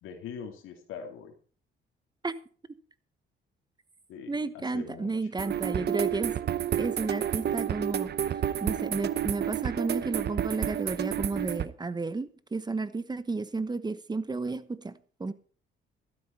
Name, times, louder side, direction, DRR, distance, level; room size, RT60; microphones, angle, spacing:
voice 1, 0.0-1.3 4.1-5.3, left 6 dB, 90° left, 2.4 m, -43 dB
voice 2, 4.3-6.3 6.7-8.1 8.6-15.3, right 3 dB, 20° right, 1.1 m, -32 dB
sound 1, 5.4-11.6, right 10 dB, 55° right, 0.8 m, -30 dB
13.5 x 12.5 x 4.3 m
cardioid pair, 90°, 20 cm